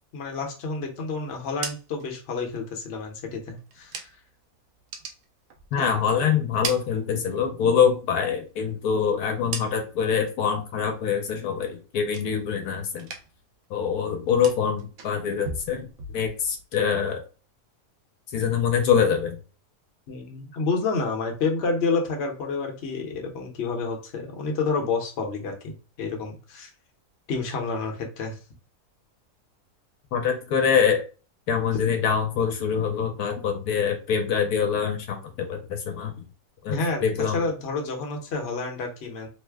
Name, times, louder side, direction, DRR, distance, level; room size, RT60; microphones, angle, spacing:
voice 1, 0.1-4.1 5.7-5.9 20.1-25.7 26.0-26.7 27.3-28.3 31.7-31.8 36.7-37.1 37.3-39.3, left 4 dB, 50° left, 2 dB, 0.9 m, -29 dB
sound 1, 1.4-4.4 4.7-6.0 6.3-7.7 8.0-10.2 10.5-11.0 11.3-12.7 12.9-13.5 13.8-16.6, right 5 dB, 70° right, 1.0 m, -40 dB
voice 2, 5.7-13.1 13.7-15.9 16.1-17.2 18.3-19.4 30.1-31.0 31.5-36.1 36.6-37.5, left 7 dB, 75° left, 4 dB, 1.1 m, -24 dB
3.1 x 2.1 x 3.3 m, 0.35 s
omnidirectional pair, 1.6 m